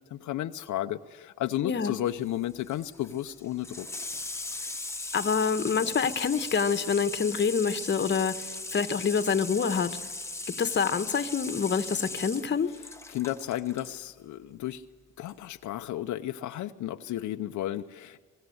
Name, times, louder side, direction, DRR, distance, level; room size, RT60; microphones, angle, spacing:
voice 1, 0.1-3.9 13.1-14.8 15.2-18.2, left 13 dB, 80° left, 7 dB, 0.8 m, -33 dB
voice 2, 1.6-2.0 5.1-10.0 10.5-12.7, left 6 dB, 35° left, 11 dB, 1.3 m, -27 dB
Water tap faucet / Sink (filling or washing), 2.1-13.9 15.2-15.3, left 2 dB, 10° left, 1.2 m, -39 dB
24.5 x 19.5 x 7.9 m, 1.4 s
cardioid pair, 90°, 30 cm